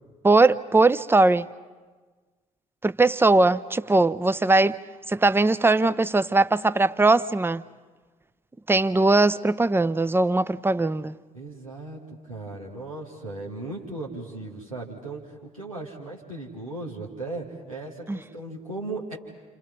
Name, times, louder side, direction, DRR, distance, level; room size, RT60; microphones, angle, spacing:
voice 1, 0.2-1.5 2.8-4.8 5.1-7.6 8.7-11.2 18.1-18.2, right 2 dB, 15° right, 0.7 m, -20 dB
voice 2, 11.3-19.2, right 2 dB, 90° right, 2.5 m, -37 dB
30.0 x 27.0 x 5.5 m
figure-of-eight pair, 45°, 17 cm